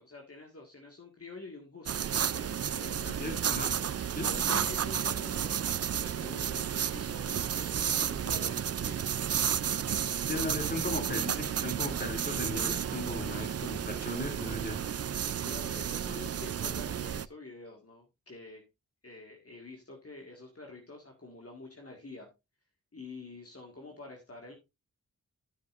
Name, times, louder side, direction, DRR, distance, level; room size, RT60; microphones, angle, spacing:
voice 1, 0.0-3.2 4.2-5.5 5.8-9.0 13.3-14.7 15.4-18.6 19.0-22.3 22.9-24.5, left 3 dB, 40° left, 0 dB, 1.9 m, -48 dB
sound 1, 1.9-17.3, right 8 dB, 45° right, 0.4 m, -32 dB
voice 2, 3.1-3.8 4.1-4.6 10.2-14.8, left 1 dB, 25° left, 3 dB, 2.9 m, -37 dB
12.5 x 6.8 x 2.6 m, 0.23 s
wide cardioid pair, 65°, 34 cm